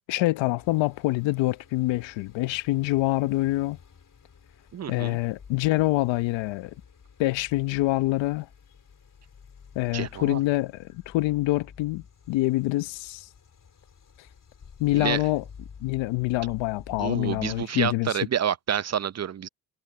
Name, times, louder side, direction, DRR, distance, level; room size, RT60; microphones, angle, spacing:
voice 1, 0.1-3.8 4.9-6.7 7.2-8.5 9.7-13.3 14.8-15.4 15.8-18.2, left 19 dB, 80° left, 1.0 m, -26 dB
sound 1, 0.6-17.7, left 6 dB, 45° left, 4.7 m, -50 dB
voice 2, 4.7-5.2 9.9-10.4 14.9-15.2 17.0-19.5, right 9 dB, 35° right, 0.7 m, -28 dB
supercardioid pair, 60°, 44 cm